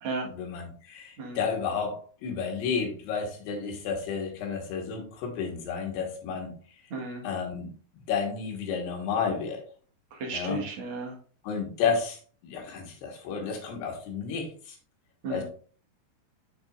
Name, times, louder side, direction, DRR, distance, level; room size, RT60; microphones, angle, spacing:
voice 1, 0.3-6.5 7.2-7.7 8.1-9.6 10.3-10.6 11.4-14.8 15.3-15.4, left 6 dB, 80° left, 2 dB, 3.4 m, -31 dB
voice 2, 6.9-7.2 10.2-11.1 15.2-15.4, right 3 dB, 65° right, -1 dB, 1.2 m, -33 dB
7.4 x 6.2 x 2.5 m, 0.43 s
omnidirectional pair, 4.8 m